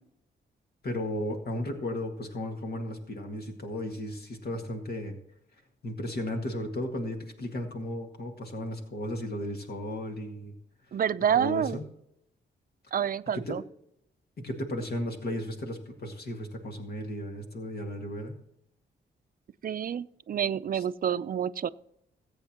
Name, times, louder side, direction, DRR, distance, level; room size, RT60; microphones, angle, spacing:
voice 1, 0.8-5.2 5.8-10.5 10.9-11.0 11.3-11.8 13.3-13.6 14.4-18.3 20.7-20.8, left 1 dB, 55° left, 2 dB, 1.9 m, -35 dB
voice 2, 10.9-11.8 12.9-13.6 19.6-21.7, right 8 dB, 50° right, 15 dB, 0.5 m, -28 dB
21.5 x 8.1 x 3.0 m, 0.80 s
cardioid pair, 80°, 19 cm